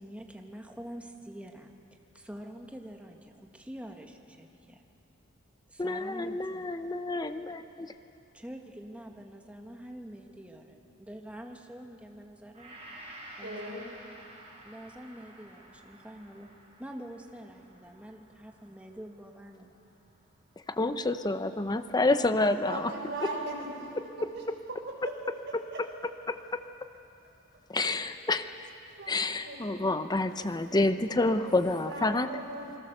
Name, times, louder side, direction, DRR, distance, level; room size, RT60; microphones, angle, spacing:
voice 1, 0.0-1.7 2.1-4.8 5.7-6.7 8.3-12.8 13.4-13.9 14.6-16.5 16.8-19.7, equal, 5° right, 2 dB, 1.6 m, -46 dB
voice 2, 5.8-7.9 20.7-22.9 23.2-23.3 26.3-26.6 27.7-28.5 29.1-32.3, left 2 dB, 20° left, 10 dB, 0.7 m, -28 dB
Gong, 12.5-20.9 21.3-21.4, right 1 dB, 30° right, 6.1 m, -52 dB
voice 3, 13.4-13.9 22.6-23.8 24.3-24.4 25.0-25.1 25.7-25.8 27.8-28.0 28.9-30.0 31.5-32.8, right 2 dB, 55° right, -1 dB, 5.5 m, -39 dB
28.0 x 22.0 x 6.8 m, 2.8 s
head